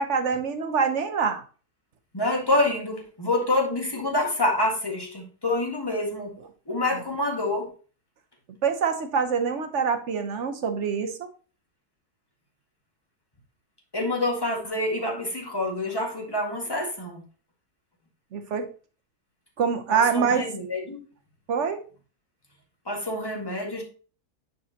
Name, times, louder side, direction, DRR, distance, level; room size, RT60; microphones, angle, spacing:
voice 1, 0.0-1.4 6.9-7.0 8.6-11.3 18.3-18.7 19.6-20.4 21.5-21.8, right 6 dB, 55° right, 7 dB, 1.1 m, -25 dB
voice 2, 2.1-6.3 6.7-7.7 13.9-17.2 19.9-21.0 22.8-23.8, left 1 dB, 15° left, 0 dB, 1.6 m, -27 dB
10.0 x 4.7 x 2.8 m, 0.38 s
omnidirectional pair, 1.7 m